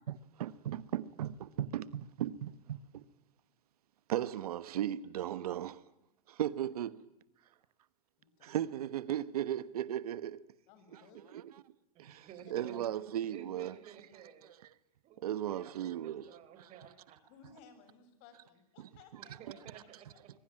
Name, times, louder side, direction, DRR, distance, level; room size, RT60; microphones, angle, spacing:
voice 1, 0.1-3.0 4.1-5.8 6.3-7.1 8.4-10.4 10.9-11.0 11.3-11.6 12.0-13.7 14.2-14.6 15.2-16.7, right 11 dB, 85° right, 1.2 m, -37 dB
voice 2, 8.2-8.6 10.7-11.4 12.1-12.2 17.3-19.4, left 6 dB, 50° left, 7.4 m, -60 dB
voice 3, 11.9-12.8 13.3-14.5 15.0-17.2 19.2-20.3, right 8 dB, 35° right, 5.3 m, -53 dB
26.0 x 22.5 x 8.9 m
supercardioid pair, 135°, 19 cm